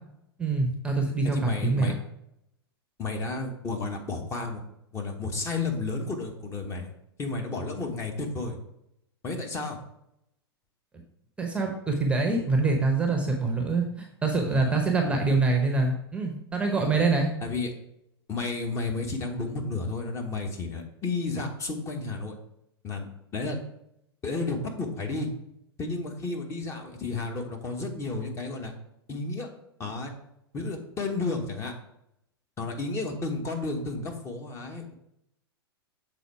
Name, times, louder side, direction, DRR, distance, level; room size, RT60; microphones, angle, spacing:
voice 1, 0.4-1.9 11.4-17.3, right 3 dB, 10° right, 2 dB, 0.9 m, -25 dB
voice 2, 1.3-1.9 3.0-4.6 4.9-6.9 7.2-8.6 9.2-9.8 14.5-14.8 17.4-17.7 18.3-22.3 22.8-23.6 24.2-25.3 25.8-28.7 29.1-29.5 29.8-30.1 30.5-31.7 32.6-34.9, left 3 dB, 20° left, 2 dB, 1.2 m, -32 dB
6.9 x 4.1 x 4.7 m, 0.77 s
figure-of-eight pair, 100°, 13 cm